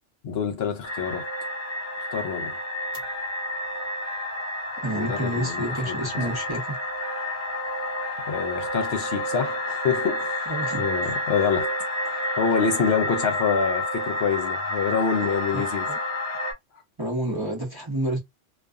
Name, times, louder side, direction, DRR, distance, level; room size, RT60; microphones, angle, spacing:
voice 1, 0.2-1.3 2.1-2.6 4.9-6.0 6.3-6.4 8.3-10.5 10.8-11.7 12.0-15.9, left 6 dB, 65° left, 0.8 m, -26 dB
sound 1, 0.8-16.5, left 1 dB, 15° left, 0.6 m, -30 dB
sound 2, 2.9-3.7 4.0-4.7 5.0-5.7 6.0-7.7 8.0-8.6, left 2 dB, 85° right, 1.0 m, -44 dB
voice 2, 4.8-6.8 10.5-10.9 15.2-16.0 17.0-18.2, right 1 dB, 25° right, 0.7 m, -29 dB
2.4 x 2.4 x 2.3 m
omnidirectional pair, 1.2 m